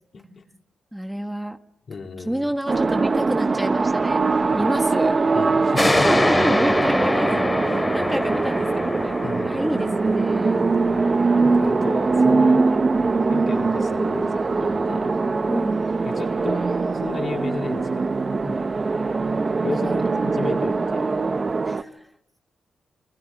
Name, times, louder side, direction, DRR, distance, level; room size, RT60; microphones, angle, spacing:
voice 1, 0.1-0.4 1.9-2.5 4.6-4.7 5.3-6.1 8.1-8.2 9.2-9.7 11.4-12.7 13.3-15.1 16.0-16.7 16.9-18.6 19.6-21.2, left 4 dB, 55° left, 2 dB, 4.4 m, -33 dB
voice 2, 0.9-1.6 2.3-5.2 5.9-10.7 15.5-15.8 19.7-20.0 21.7-22.1, right 1 dB, 5° right, 6 dB, 1.7 m, -29 dB
sound 1, 2.7-21.8, right 4 dB, 40° right, 1.3 m, -22 dB
sound 2, 5.8-12.9, left 1 dB, 20° left, 3.3 m, -25 dB
29.5 x 20.5 x 9.2 m, 0.85 s
supercardioid pair, 55°, 0 cm